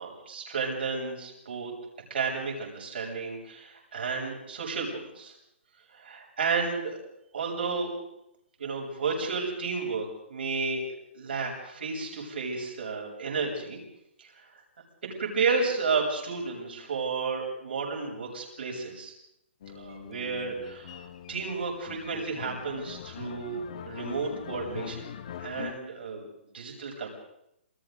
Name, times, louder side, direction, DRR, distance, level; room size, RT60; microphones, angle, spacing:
voice 1, 0.0-1.7 2.1-5.3 5.9-7.0 7.3-7.9 8.6-10.8 11.1-13.8 14.2-14.3 15.2-19.1 19.7-25.1 25.4-26.2 26.5-27.1, right 4 dB, 60° right, -1 dB, 7.5 m, -32 dB
sound 1, 19.6-25.8, left 9 dB, 30° left, 1.0 m, -42 dB
28.5 x 23.5 x 4.0 m, 0.79 s
hypercardioid pair, 180°, 7 cm